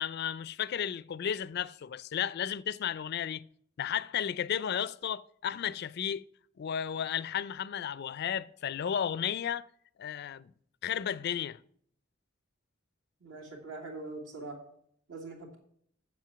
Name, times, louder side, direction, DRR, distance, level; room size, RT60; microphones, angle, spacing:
voice 1, 0.0-3.4 3.8-6.2 6.6-9.7 10.0-10.5 10.8-11.6, left 9 dB, 55° left, 0.4 m, -33 dB
voice 2, 13.2-14.6 15.1-15.6, right 3 dB, 75° right, 2.6 m, -42 dB
7.4 x 7.3 x 5.9 m
head